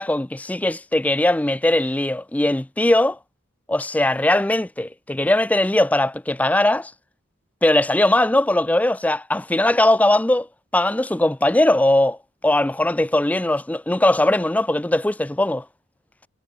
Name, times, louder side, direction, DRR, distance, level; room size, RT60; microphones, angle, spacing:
voice 1, 0.0-3.2 3.7-6.9 7.6-10.5 10.7-12.2 12.4-15.7, left 1 dB, 5° left, 0.4 m, -19 dB
head